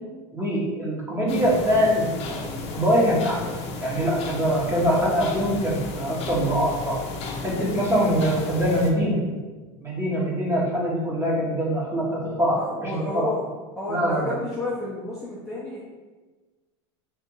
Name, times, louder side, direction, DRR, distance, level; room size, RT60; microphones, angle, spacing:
voice 1, 0.3-3.4 3.8-7.0 7.4-9.2 9.8-12.6 12.9-13.3 13.9-14.3, equal, 15° right, -4 dB, 1.2 m, -23 dB
sound 1, 1.3-8.9, left 3 dB, 45° left, 0.7 m, -34 dB
voice 2, 12.5-13.4 13.8-15.8, left 1 dB, ahead, -9 dB, 0.9 m, -31 dB
3.4 x 2.8 x 4.6 m, 1.3 s
supercardioid pair, 115°, 15 cm